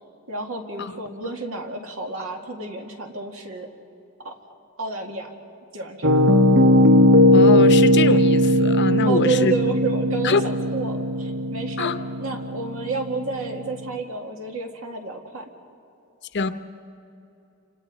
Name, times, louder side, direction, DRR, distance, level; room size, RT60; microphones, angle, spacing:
voice 1, 0.3-3.7 4.2-4.3 4.8-5.3 5.7-6.1 9.1-11.9 12.2-15.5, right 3 dB, 80° right, 2.1 m, -30 dB
Piano, 6.0-13.9, left 1 dB, 55° right, 1.0 m, -18 dB
voice 2, 7.3-9.5 10.2-10.4 11.8-12.0 16.3-16.5, left 4 dB, 55° left, 0.8 m, -23 dB
29.5 x 26.0 x 4.2 m
head